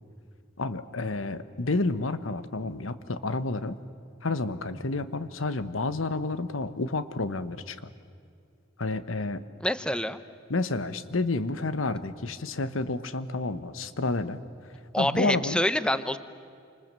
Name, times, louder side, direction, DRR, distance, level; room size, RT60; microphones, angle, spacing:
voice 1, 0.6-3.8 4.2-7.9 8.8-9.4 10.5-14.4 15.0-15.6, left 2 dB, 85° left, 12 dB, 1.2 m, -30 dB
voice 2, 9.6-10.2 14.9-16.2, left 1 dB, 5° left, 12 dB, 0.8 m, -26 dB
28.0 x 26.0 x 7.6 m, 2.4 s
head